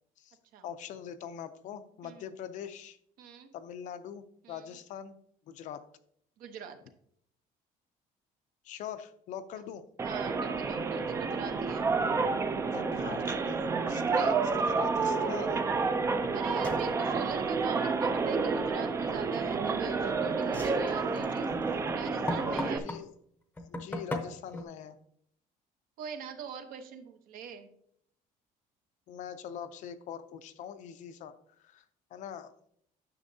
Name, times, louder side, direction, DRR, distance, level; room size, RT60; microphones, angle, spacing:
voice 1, 0.6-3.0 3.5-5.2 5.5-5.8 8.6-9.8 12.7-15.6 22.4-23.1 23.6-25.0 29.1-31.3 31.6-31.8 32.1-32.5, left 8 dB, 55° left, 10 dB, 0.5 m, -42 dB
voice 2, 3.2-3.5 4.4-4.7 6.4-6.8 10.0-11.9 14.2-14.5 16.3-21.5 21.9-22.9 26.0-27.7, right 7 dB, 65° right, 7 dB, 0.9 m, -42 dB
sound 1, 10.0-22.8, right 4 dB, 20° right, 0.4 m, -30 dB
sound 2, 16.2-16.3 16.6-16.9 19.3-19.8 20.4-23.0 23.6-24.6, left 2 dB, 10° left, 0.7 m, -38 dB
9.7 x 6.7 x 2.7 m, 0.69 s
cardioid pair, 180°, 15 cm